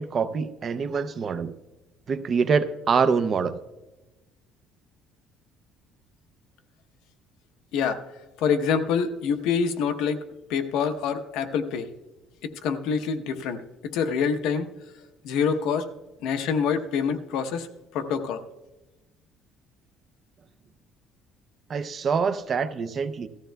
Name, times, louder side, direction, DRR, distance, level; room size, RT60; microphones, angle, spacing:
voice 1, 0.0-1.5 2.1-3.5 21.7-23.3, right 5 dB, 30° right, 12 dB, 0.5 m, -25 dB
voice 2, 8.4-10.2 10.5-11.9 12.6-14.7 15.2-15.9 16.2-17.7 17.9-18.4, left 6 dB, 75° left, 7 dB, 0.8 m, -26 dB
17.5 x 14.0 x 2.2 m, 1.1 s
cardioid pair, 170°, 0 cm